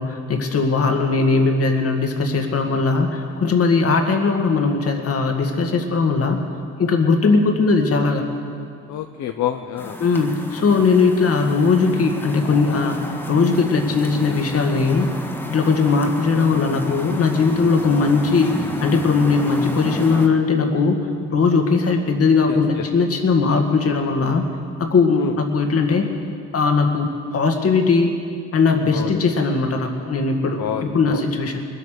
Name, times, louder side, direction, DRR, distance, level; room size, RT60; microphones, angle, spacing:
voice 1, 0.0-6.4 6.8-8.3 10.0-15.1 15.5-21.0 21.3-24.5 24.8-26.1 26.5-28.1 28.5-31.7, left 4 dB, 50° left, 3 dB, 2.0 m, -19 dB
voice 2, 8.9-10.0 22.5-22.8 25.2-25.3 28.9-29.2 30.6-31.2, left 10 dB, 70° left, 6 dB, 0.7 m, -28 dB
sound 1, 9.8-20.3, left 1 dB, 5° left, 1.6 m, -32 dB
21.0 x 8.4 x 6.6 m, 2.3 s
cardioid pair, 90°, 30 cm